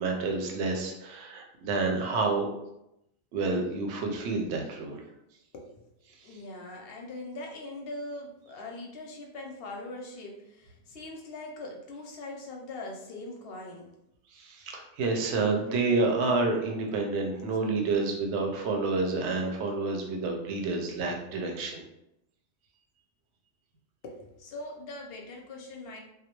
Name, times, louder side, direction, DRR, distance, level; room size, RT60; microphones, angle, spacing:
voice 1, 0.0-2.5 3.3-5.0 14.3-21.8, right 3 dB, 70° right, 2 dB, 0.8 m, -29 dB
voice 2, 5.5-5.9 6.2-13.9 24.0-26.0, left 2 dB, 65° left, 1 dB, 0.7 m, -41 dB
2.3 x 2.1 x 2.9 m, 0.84 s
omnidirectional pair, 1.2 m